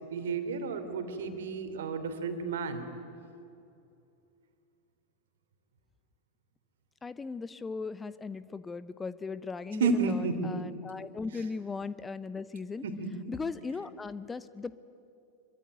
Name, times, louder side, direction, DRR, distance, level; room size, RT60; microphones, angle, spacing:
voice 1, 0.0-2.9 9.8-10.5 12.8-13.1, right 4 dB, 60° right, 8 dB, 3.0 m, -31 dB
voice 2, 7.0-12.8 13.3-14.8, left 4 dB, 15° left, 16 dB, 0.7 m, -38 dB
26.0 x 23.0 x 9.3 m, 2.6 s
figure-of-eight pair, 90°, 0 cm